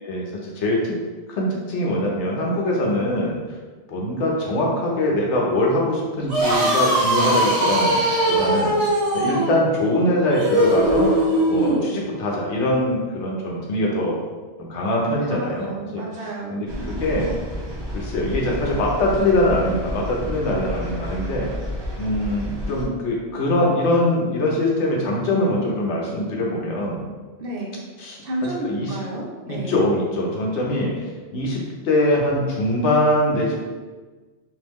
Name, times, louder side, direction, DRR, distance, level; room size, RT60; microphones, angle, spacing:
voice 1, 0.0-0.9 1.3-3.3 3.9-8.0 8.3-11.1 11.5-14.2 14.6-16.0 16.5-16.7 17.0-17.3 17.9-21.5 22.0-27.0 28.0-28.2 28.6-29.0 29.4-30.9 31.3-33.6, left 1 dB, 85° left, -2 dB, 1.1 m, -22 dB
sound 1, 6.2-11.8, right 1 dB, 75° right, 1.3 m, -20 dB
voice 2, 15.2-16.9 27.4-27.8 28.2-29.7, right 1 dB, 60° right, -2 dB, 0.9 m, -31 dB
sound 2, 16.7-22.8, equal, 30° right, 0.6 m, -31 dB
3.5 x 2.7 x 3.1 m, 1.3 s
omnidirectional pair, 1.2 m